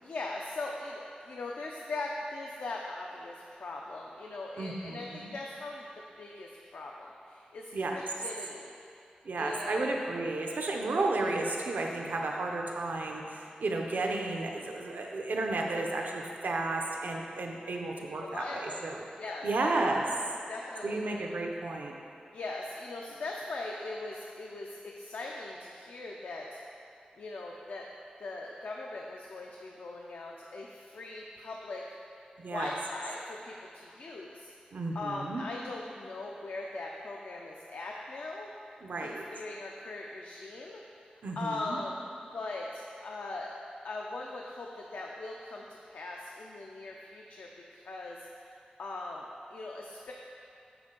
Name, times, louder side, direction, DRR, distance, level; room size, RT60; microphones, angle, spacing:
voice 1, 0.0-5.8 6.2-8.7 9.4-9.9 18.0-18.8 19.2-19.7 20.5-21.2 22.3-26.6 27.2-27.8 28.2-31.8 32.5-34.5 34.9-38.5 38.9-40.8 41.4-42.0 42.3-43.5 43.8-50.1, left 2 dB, 80° left, -1 dB, 0.5 m, -40 dB
voice 2, 4.6-5.3 7.7-8.0 9.2-19.1 19.4-20.0 20.8-21.9 32.4-32.7 34.7-35.4 38.8-39.3 41.2-41.8, right 2 dB, 75° right, 1 dB, 0.7 m, -33 dB
6.4 x 6.0 x 3.8 m, 2.7 s
wide cardioid pair, 100°, 3 cm